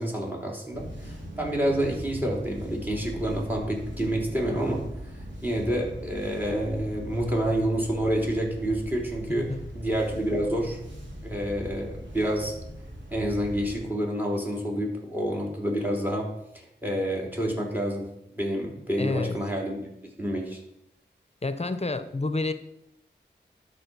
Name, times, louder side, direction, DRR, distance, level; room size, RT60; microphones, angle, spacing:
voice 1, 0.0-10.8 11.2-12.6 13.1-18.1 18.4-19.8 20.2-20.6, right 1 dB, 10° right, 0 dB, 3.4 m, -28 dB
sound 1, 0.7-13.9, equal, 90° right, 2.6 m, -40 dB
voice 2, 19.0-19.4 21.4-22.5, left 3 dB, 35° left, 10 dB, 0.9 m, -29 dB
12.5 x 4.6 x 6.2 m, 0.84 s
cardioid pair, 40°, 19 cm